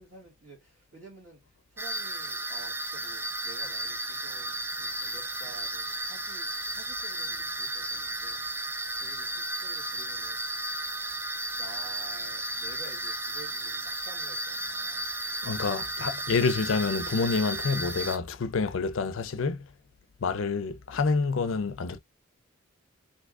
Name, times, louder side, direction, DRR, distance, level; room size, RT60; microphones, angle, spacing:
voice 1, 0.0-1.4 1.7-10.4 11.5-15.2, right 3 dB, 65° right, 2.3 m, -51 dB
sound 1, 1.8-18.2, right 1 dB, 10° right, 0.3 m, -34 dB
voice 2, 15.4-19.7 20.2-22.0, left 4 dB, 70° left, 0.5 m, -28 dB
3.6 x 2.6 x 2.4 m
head